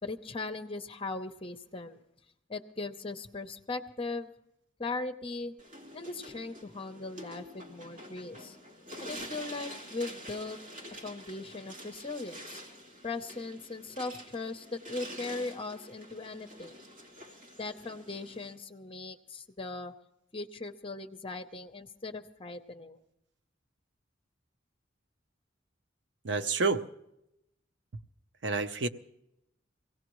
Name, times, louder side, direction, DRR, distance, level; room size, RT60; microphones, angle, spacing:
voice 1, 0.0-2.0 2.5-4.3 4.8-5.5 5.9-8.6 9.0-10.6 11.0-12.6 13.0-16.8 17.6-19.9 20.3-23.0, left 3 dB, 30° left, 6 dB, 0.8 m, -39 dB
sound 1, 5.6-18.6, equal, 45° right, 2.4 m, -47 dB
voice 2, 26.2-26.8 28.4-28.9, right 3 dB, 65° right, 9 dB, 0.7 m, -28 dB
23.5 x 17.5 x 3.1 m, 0.82 s
head